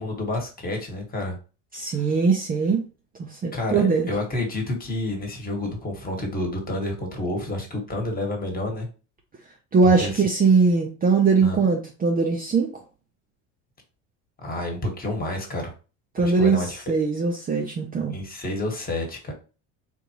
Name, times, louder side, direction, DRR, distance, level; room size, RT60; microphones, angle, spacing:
voice 1, 0.0-1.4 3.5-8.9 9.8-10.2 11.4-11.6 14.4-15.7 16.2-16.8 18.1-19.3, left 1 dB, 25° left, 1.4 m, -29 dB
voice 2, 1.7-2.8 3.2-4.1 9.7-12.8 16.1-16.6 16.9-18.2, right 4 dB, 25° right, 0.6 m, -21 dB
3.9 x 2.6 x 2.9 m
supercardioid pair, 100°, 38 cm